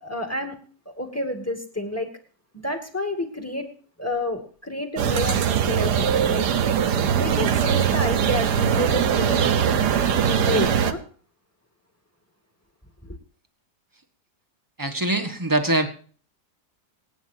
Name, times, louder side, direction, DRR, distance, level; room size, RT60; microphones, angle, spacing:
voice 1, 0.0-0.6 0.9-2.1 2.6-3.7 4.0-6.5 7.1-9.9 10.3-11.0, left 1 dB, 10° left, 4 dB, 2.3 m, -29 dB
sound 1, 5.0-10.9, right 8 dB, 80° right, 1.6 m, -21 dB
voice 2, 14.8-15.9, right 1 dB, 15° right, 7 dB, 1.3 m, -23 dB
27.5 x 9.4 x 2.8 m, 0.42 s
omnidirectional pair, 1.8 m